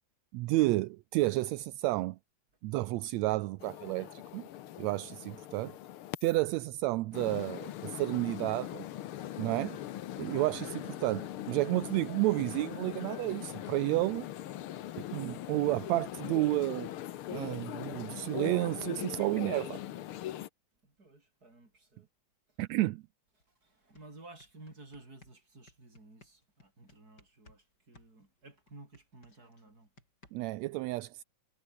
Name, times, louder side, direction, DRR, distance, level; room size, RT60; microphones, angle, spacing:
voice 1, 0.3-2.2 2.6-4.5 4.8-5.8 6.2-8.9 9.4-9.8 10.2-14.3 15.1-16.9 17.3-19.8 22.6-23.0 30.3-31.2, right 19 dB, 75° right, 1.7 m, -31 dB
sound 1, 3.6-6.4 7.1-20.5, left 12 dB, 70° left, 1.3 m, -41 dB
voice 2, 20.8-22.1 23.6-29.9, right 2 dB, 30° right, 6.4 m, -54 dB
sound 2, 23.4-23.5 23.8-27.6 27.9-30.6, left 2 dB, 30° left, 6.8 m, -61 dB
omnidirectional pair, 3.5 m